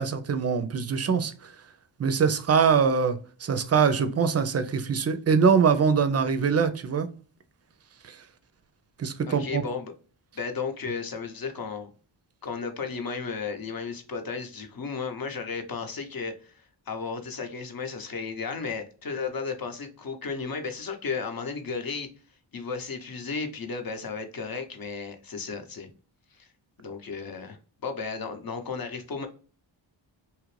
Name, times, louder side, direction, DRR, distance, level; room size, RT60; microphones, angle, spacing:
voice 1, 0.0-1.3 2.0-7.1 9.0-9.6, right 6 dB, 35° right, 0.4 m, -23 dB
voice 2, 9.3-9.9 10.3-11.9 12.4-22.1 22.5-25.9 26.4-26.5 26.8-27.6 27.8-29.3, left 5 dB, 45° left, 0.8 m, -34 dB
2.9 x 2.5 x 3.1 m
cardioid pair, 65°, 48 cm